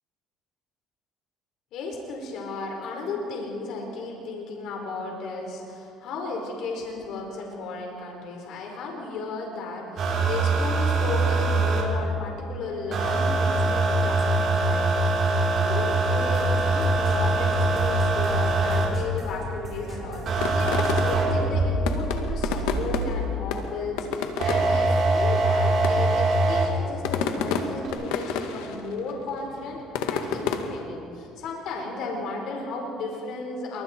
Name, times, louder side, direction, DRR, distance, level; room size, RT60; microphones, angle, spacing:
voice 1, 1.7-33.8, left 3 dB, 70° left, 0 dB, 4.5 m, -34 dB
sound 1, 10.0-11.8 12.9-18.9 20.3-23.2 24.4-26.6 27.8-27.9, right 2 dB, 55° right, 6.9 m, -23 dB
sound 2, 16.3-21.5, right 1 dB, 35° right, 7.6 m, -38 dB
sound 3, 20.4-21.4 21.8-23.2 23.5-24.8 25.5-25.6 25.8-26.2 26.8-28.8 29.1-30.8, left 6 dB, 90° left, 1.8 m, -29 dB
27.5 x 24.0 x 4.5 m, 2.6 s
supercardioid pair, 90°, 0 cm